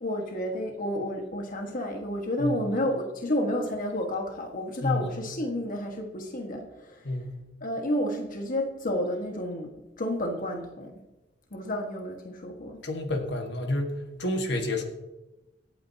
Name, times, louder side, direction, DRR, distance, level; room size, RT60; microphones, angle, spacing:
voice 1, 0.0-7.2 7.6-11.0 11.5-12.9, left 1 dB, 50° left, 2 dB, 1.5 m, -31 dB
voice 2, 7.0-7.4 12.8-14.8, left 1 dB, 65° left, 4 dB, 1.6 m, -29 dB
25.5 x 8.8 x 2.8 m, 1.0 s
head